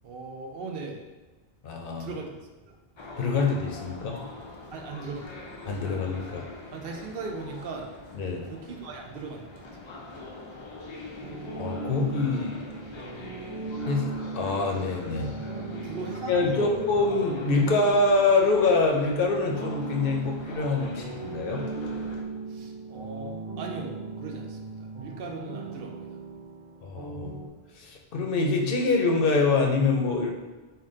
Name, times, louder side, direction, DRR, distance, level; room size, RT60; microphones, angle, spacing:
voice 1, 0.0-1.0 1.9-2.3 2.7-2.8 4.7-5.5 6.7-7.9 8.4-9.7 15.8-16.9 22.5-26.2, right 4 dB, 70° right, 1 dB, 0.7 m, -38 dB
voice 2, 1.6-2.1 3.2-4.2 5.7-6.4 8.2-8.4 11.6-12.6 13.9-15.3 15.6-15.7 16.3-21.6 26.8-27.4 27.8-30.3, left 3 dB, 65° left, 1 dB, 0.7 m, -25 dB
sound 1, 3.0-22.2, left 2 dB, 50° left, 0.3 m, -43 dB
sound 2, 11.2-27.5, right 4 dB, 35° right, 0.5 m, -38 dB
3.8 x 2.2 x 3.6 m, 1.2 s
omnidirectional pair, 1.0 m